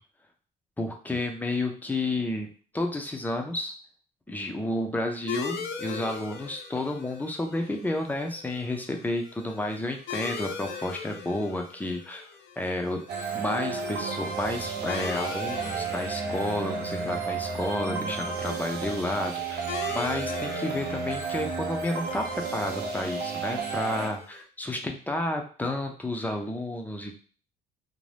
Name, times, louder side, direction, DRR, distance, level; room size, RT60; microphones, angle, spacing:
voice 1, 0.8-2.5 2.7-3.7 4.3-12.3 12.6-13.0 13.3-19.6 19.9-27.2, left 1 dB, 10° left, 3 dB, 0.5 m, -31 dB
sound 1, 5.3-24.4, left 6 dB, 90° left, 0.6 m, -41 dB
sound 2, 13.1-24.1, right 5 dB, 75° right, 0.6 m, -32 dB
2.6 x 2.2 x 3.3 m, 0.40 s
cardioid pair, 110°, 17 cm